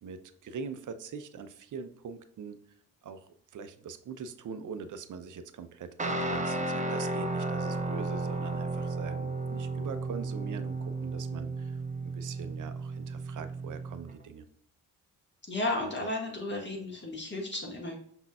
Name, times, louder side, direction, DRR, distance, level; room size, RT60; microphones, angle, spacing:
voice 1, 0.0-2.6 3.0-3.2 3.5-14.5, right 6 dB, 45° right, 10 dB, 0.7 m, -42 dB
Guitar, 6.0-14.1, right 2 dB, 15° right, 0.8 m, -33 dB
voice 2, 15.5-18.0, left 2 dB, 25° left, 1 dB, 1.8 m, -33 dB
5.7 x 3.9 x 2.4 m, 0.66 s
hypercardioid pair, 40°, 42 cm